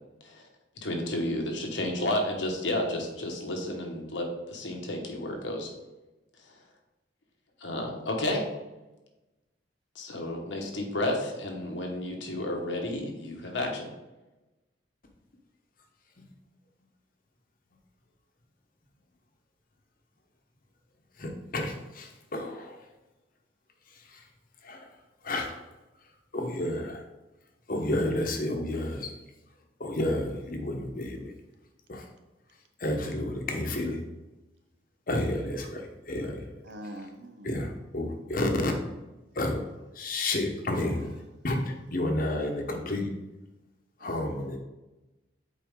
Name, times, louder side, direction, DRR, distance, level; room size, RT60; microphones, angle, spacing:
voice 1, 0.8-5.7 7.6-8.5 9.9-13.9, left 1 dB, 80° left, 2 dB, 1.4 m, -31 dB
voice 2, 21.2-22.8 24.1-24.2 24.6-24.8 25.2-25.6 26.3-27.0 27.7-29.1 29.8-31.3 31.9-32.1 32.8-34.0 35.1-36.4 37.4-38.7 39.3-39.6 40.0-41.1 41.4-43.1 44.0-44.6, left 1 dB, 50° left, 3 dB, 1.1 m, -30 dB
voice 3, 36.6-37.6 40.7-41.0 44.0-44.4, right 1 dB, 70° right, 6 dB, 0.8 m, -43 dB
7.6 x 4.6 x 3.7 m, 1.1 s
head